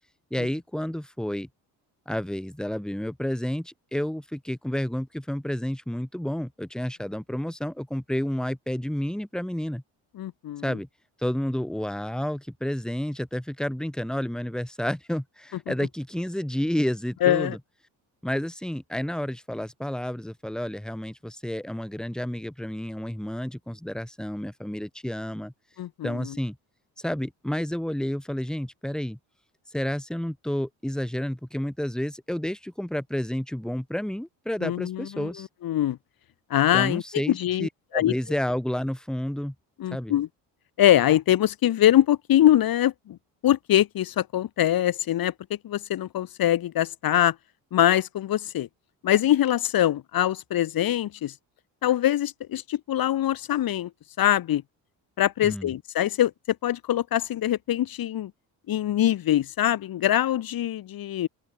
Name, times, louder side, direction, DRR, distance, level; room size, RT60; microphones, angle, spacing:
voice 1, 0.3-1.5 2.1-9.8 10.6-10.9 11.2-17.6 18.2-25.5 26.0-26.6 27.0-29.2 29.7-35.5 36.7-39.5 39.9-40.1 55.4-55.7, equal, ahead, 2.7 m, -30 dB
voice 2, 10.2-10.7 17.2-17.6 25.8-26.4 34.6-36.0 36.5-37.7 37.9-38.1 39.8-40.3 40.8-43.2 43.4-45.3 45.6-47.4 47.7-48.7 49.0-51.3 51.8-53.9 54.2-54.6 55.2-56.3 56.6-58.3 58.7-61.3, left 12 dB, 60° left, 1.7 m, -23 dB
open air
supercardioid pair, 80°, 40 cm